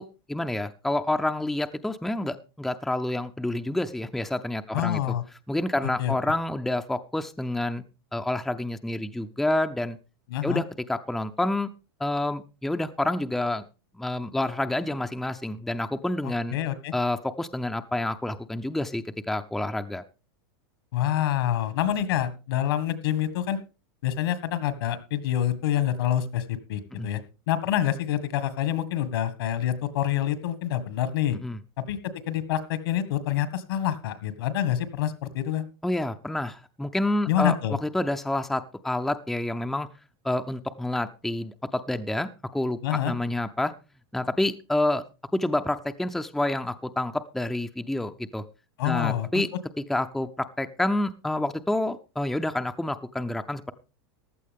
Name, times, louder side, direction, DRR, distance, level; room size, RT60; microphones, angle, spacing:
voice 1, 0.0-5.0 5.5-7.8 8.1-10.0 10.4-11.7 12.0-13.6 13.9-16.6 16.9-20.0 26.9-27.1 31.3-31.6 35.8-39.9 40.2-43.7 44.1-45.0 45.3-48.4 48.8-49.5 49.8-53.7, left 1 dB, ahead, 8 dB, 0.5 m, -28 dB
voice 2, 4.7-5.2 6.0-6.1 10.3-10.6 16.2-16.9 20.9-23.6 24.0-27.2 27.5-31.4 31.8-35.7 37.3-37.8 42.8-43.1 48.8-49.4, left 11 dB, 75° left, 14 dB, 1.9 m, -27 dB
15.0 x 11.5 x 3.6 m, 0.31 s
supercardioid pair, 140°, 12 cm